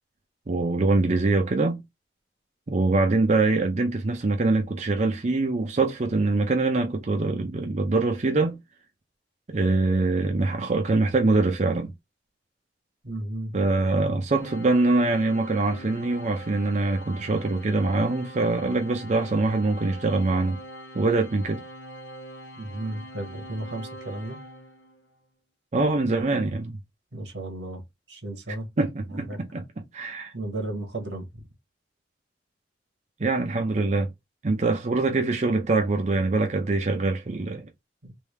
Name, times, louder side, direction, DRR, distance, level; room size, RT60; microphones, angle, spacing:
voice 1, 0.5-1.8 2.7-8.6 9.5-11.9 13.5-20.6 20.9-21.6 25.7-26.8 28.8-29.6 29.9-30.3 33.2-34.1 34.4-37.7, right 3 dB, 40° right, 0.6 m, -24 dB
voice 2, 13.0-13.6 22.6-24.4 27.1-27.8 28.1-28.7 29.1-29.4 30.3-31.4 38.0-38.1, right 1 dB, 80° right, 1.3 m, -34 dB
Organ, 14.3-25.1, equal, 90° left, 0.9 m, -43 dB
3.5 x 2.7 x 3.2 m
head